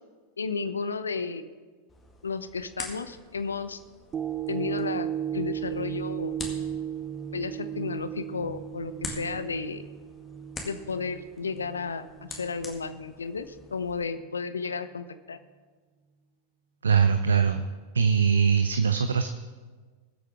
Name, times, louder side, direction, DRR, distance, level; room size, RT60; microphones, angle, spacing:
voice 1, 0.4-1.4 2.2-3.8 4.5-6.4 7.3-9.8 10.6-15.4, left 4 dB, 75° left, 12 dB, 0.7 m, -33 dB
sound 1, 1.9-14.0, left 3 dB, 20° left, 2.0 m, -45 dB
sound 2, 4.1-12.5 13.0-13.1, right 10 dB, 25° right, 0.5 m, -35 dB
voice 2, 16.8-17.6 17.9-19.3, right 6 dB, 70° right, 9 dB, 0.5 m, -22 dB
21.0 x 8.2 x 3.5 m, 1.4 s
figure-of-eight pair, 90°, 0 cm